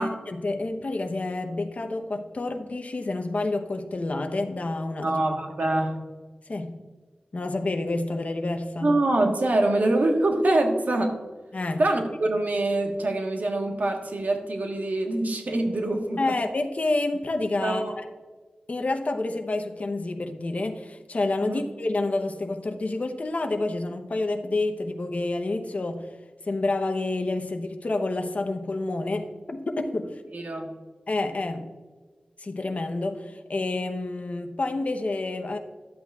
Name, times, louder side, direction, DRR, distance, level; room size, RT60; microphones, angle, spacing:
voice 1, 0.0-5.1 6.5-6.8 7.3-9.0 11.5-11.8 16.2-17.8 18.7-26.1 26.5-30.2 31.1-31.7 32.4-35.6, left 2 dB, 55° left, 5 dB, 0.8 m, -28 dB
voice 2, 5.0-6.0 8.8-11.2 11.8-16.2 17.6-18.0 21.4-21.6 30.3-30.7, right 2 dB, 70° right, 2 dB, 1.3 m, -24 dB
12.0 x 8.3 x 2.4 m, 1.4 s
wide cardioid pair, 75°, 3 cm